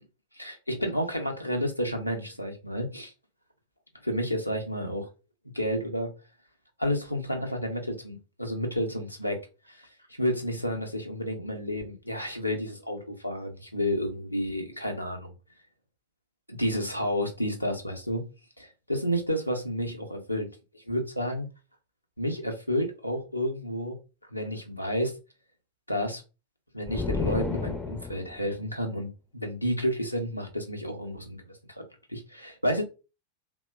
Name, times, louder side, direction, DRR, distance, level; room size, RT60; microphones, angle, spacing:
voice 1, 0.3-3.1 4.0-5.1 5.5-6.1 6.8-9.4 9.7-9.9 10.2-15.3 16.5-18.3 18.6-21.5 22.2-24.0 24.3-25.1 25.9-26.2 26.7-31.8 32.1-32.8, equal, 90° left, 0.6 m, -31 dB
sound 1, 26.9-28.5, left 4 dB, 15° left, 0.4 m, -31 dB
3.0 x 2.1 x 2.3 m
figure-of-eight pair, 90°, 0 cm